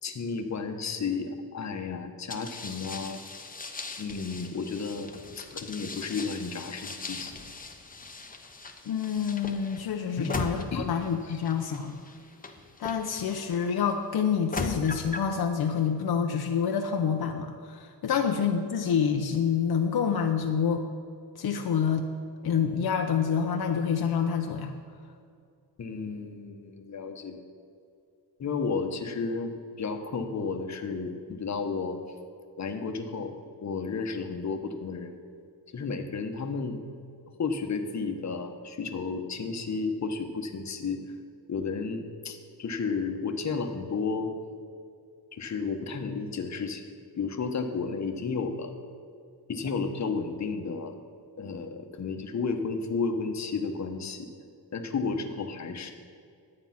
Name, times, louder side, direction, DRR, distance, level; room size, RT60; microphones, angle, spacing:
voice 1, 0.0-3.2 4.0-7.3 10.2-10.3 10.7-10.9 11.3-11.4 18.1-18.2 25.8-27.4 28.4-32.0 32.6-33.3 33.6-35.2 35.7-36.8 37.4-41.0 41.5-44.3 45.3-46.8 47.2-48.7 49.5-51.0 51.4-54.3 54.7-55.9, left 4 dB, 45° left, 5 dB, 1.1 m, -32 dB
sound 1, 2.3-13.6 14.2-15.3, left 3 dB, 20° left, 0.9 m, -39 dB
voice 2, 8.8-12.0 12.8-20.8 21.4-22.1 22.4-24.7, left 7 dB, 70° left, 3 dB, 0.8 m, -27 dB
11.5 x 8.8 x 5.8 m, 2.4 s
wide cardioid pair, 125°, 39 cm